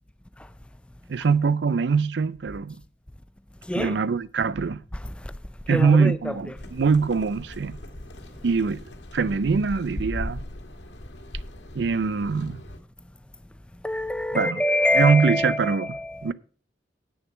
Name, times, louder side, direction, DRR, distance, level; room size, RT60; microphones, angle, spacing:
voice 1, 1.1-2.8 3.7-4.8 5.7-7.8 8.4-8.8 9.1-10.4 11.7-12.6 14.3-14.6 14.9-16.3, right 5 dB, 75° right, 0.5 m, -23 dB
voice 2, 3.6-4.0 4.9-5.3 5.7-6.4 13.8-16.3, left 1 dB, 5° left, 0.4 m, -26 dB
sound 1, 6.6-12.8, left 1 dB, 80° left, 1.5 m, -38 dB
8.8 x 6.9 x 5.6 m
head